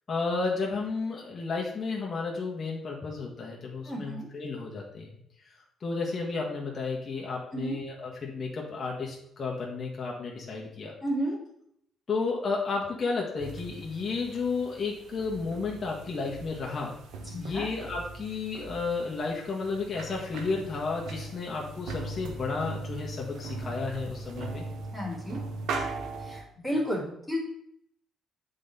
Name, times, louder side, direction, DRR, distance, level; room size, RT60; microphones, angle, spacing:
voice 1, 0.1-5.2 5.8-10.9 12.1-16.9 17.3-24.6, left 4 dB, 40° left, -3 dB, 1.6 m, -32 dB
voice 2, 3.8-4.3 7.5-7.8 11.0-11.4 17.3-17.7 24.9-25.4 26.2-27.4, equal, 5° left, -6 dB, 2.6 m, -32 dB
sound 1, 13.4-26.4, right 3 dB, 85° right, 0.9 m, -39 dB
8.3 x 4.0 x 4.2 m, 0.74 s
cardioid pair, 90°, 0 cm